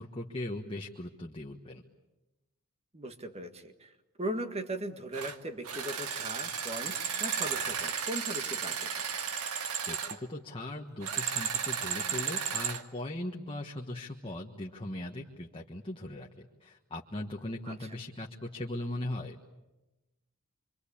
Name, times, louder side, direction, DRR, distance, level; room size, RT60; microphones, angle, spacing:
voice 1, 0.0-1.8 9.9-19.4, left 1 dB, 25° left, 1 dB, 1.4 m, -39 dB
voice 2, 2.9-8.9 17.7-18.0, right 1 dB, 30° right, 7 dB, 1.8 m, -39 dB
sound 1, 5.1-5.4 5.6-10.2 11.0-12.8, right 7 dB, 90° right, 1.7 m, -34 dB
27.0 x 24.5 x 8.6 m, 1.1 s
head